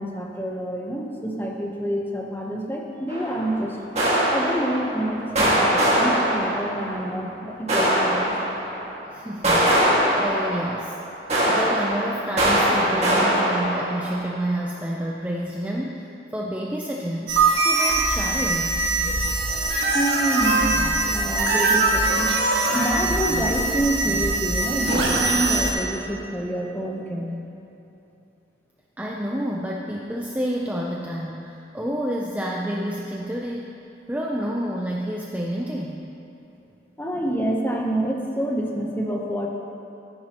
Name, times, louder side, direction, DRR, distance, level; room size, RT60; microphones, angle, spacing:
voice 1, 0.0-3.8 4.3-8.3 19.9-22.3 22.7-27.4 37.0-39.5, right 1 dB, 10° left, 0 dB, 0.8 m, -27 dB
sound 1, 3.1-3.5 4.0-5.1 5.4-7.0 7.7-8.8 9.4-10.9 11.3-14.2, equal, 35° right, 1.9 m, -22 dB
voice 2, 9.1-11.0 11.5-16.1 16.3-17.3 17.6-18.8 29.0-33.7 34.1-36.1, equal, 10° right, -2 dB, 0.4 m, -29 dB
sound 2, 17.3-25.7, right 2 dB, 70° right, 1.7 m, -22 dB
14.0 x 10.0 x 3.0 m, 2.9 s
head